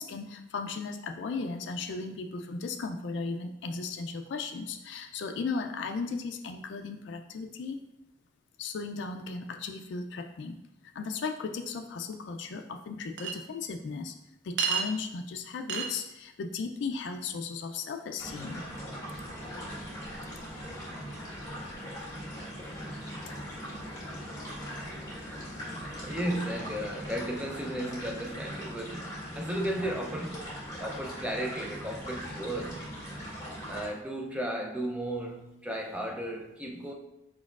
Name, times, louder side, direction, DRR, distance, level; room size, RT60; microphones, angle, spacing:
voice 1, 0.0-7.8 8.6-10.6 10.9-14.1 14.4-18.6 22.6-22.7, left 4 dB, 70° left, 4 dB, 0.3 m, -36 dB
Chink clink, 13.2-13.3 14.6-14.9 15.7-15.9, right 7 dB, 65° right, 0.5 m, -29 dB
sound 1, 18.2-33.9, equal, 20° left, 1.3 m, -40 dB
voice 2, 26.0-30.5 30.8-32.9 33.7-36.9, right 1 dB, 5° right, 1 dB, 0.4 m, -34 dB
4.6 x 4.2 x 2.4 m, 0.90 s
head